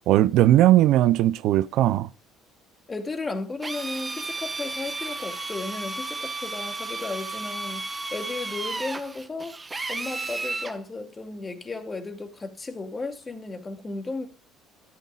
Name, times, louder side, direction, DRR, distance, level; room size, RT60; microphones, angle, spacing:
voice 1, 0.1-2.1, right 14 dB, 70° right, 0.5 m, -18 dB
voice 2, 2.9-9.6 9.9-14.3, left 3 dB, 20° left, 2.4 m, -34 dB
Drill, 3.6-10.8, right 3 dB, 20° right, 1.4 m, -33 dB
13.5 x 12.0 x 2.4 m
cardioid pair, 110°, 0 cm